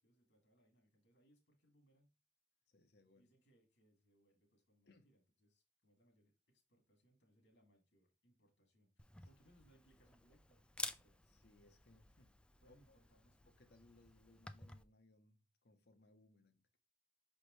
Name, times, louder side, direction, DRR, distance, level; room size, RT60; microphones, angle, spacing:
voice 1, 0.0-2.1 3.1-11.2 12.6-13.5, right 1 dB, 80° left, 2.2 m, -74 dB
voice 2, 2.7-3.3 4.9-5.0 9.1-9.3 11.3-12.3 12.7-13.0 13.5-16.6, left 2 dB, 65° left, 1.0 m, -68 dB
Camera, 9.0-14.8, left 2 dB, 5° left, 0.4 m, -52 dB
5.9 x 5.0 x 3.2 m
head